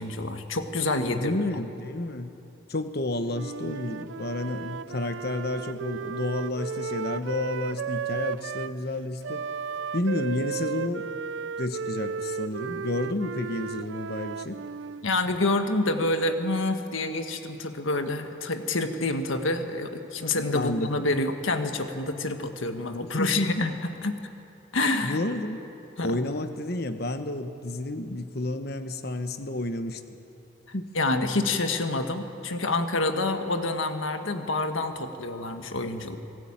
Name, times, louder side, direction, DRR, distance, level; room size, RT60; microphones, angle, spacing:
voice 1, 0.0-1.4 15.0-24.2 24.7-25.2 26.0-26.2 30.9-36.2, left 2 dB, 75° left, 7 dB, 1.6 m, -27 dB
voice 2, 1.1-2.3 2.7-9.4 9.9-11.1 11.6-14.6 20.4-21.1 23.0-23.7 25.0-25.6 26.0-30.0 30.7-30.9, left 2 dB, 50° left, 8 dB, 1.2 m, -30 dB
Wind instrument woodwind instrument, 3.3-8.7 9.2-15.1, right 6 dB, 65° right, 0.4 m, -34 dB
25.5 x 16.0 x 8.8 m, 2.9 s
head